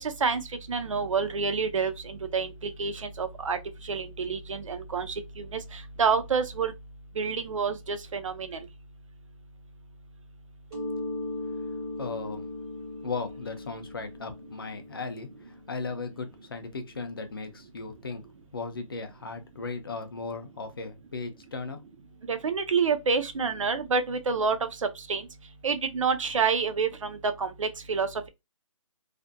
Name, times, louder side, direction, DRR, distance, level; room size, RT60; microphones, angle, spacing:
voice 1, 0.0-0.4 0.7-3.6 3.9-5.4 6.0-6.7 7.2-8.6 22.3-24.6 25.1-25.2 25.6-28.1, right 5 dB, 70° right, 0.5 m, -28 dB
Mallet percussion, 10.7-16.2, left 2 dB, 10° right, 0.5 m, -38 dB
voice 2, 12.0-12.5 13.0-18.2 18.5-21.8, left 4 dB, 40° left, 0.4 m, -37 dB
2.4 x 2.1 x 2.5 m
hypercardioid pair, 175°, 17 cm